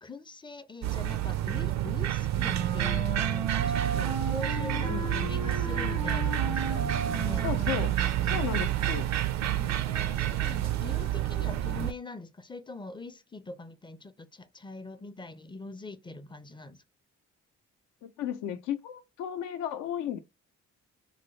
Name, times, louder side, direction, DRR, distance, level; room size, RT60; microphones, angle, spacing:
voice 1, 0.0-7.5 9.5-16.8, left 2 dB, 15° left, 0.4 m, -42 dB
sound 1, 0.8-11.9, right 13 dB, 60° right, 0.5 m, -29 dB
Wind instrument woodwind instrument, 2.3-8.5, right 2 dB, 85° right, 1.0 m, -36 dB
voice 2, 4.9-5.3 7.4-8.0 8.2-9.1 18.0-20.2, left 10 dB, 80° left, 0.6 m, -34 dB
3.7 x 2.0 x 3.1 m
supercardioid pair, 60°, 31 cm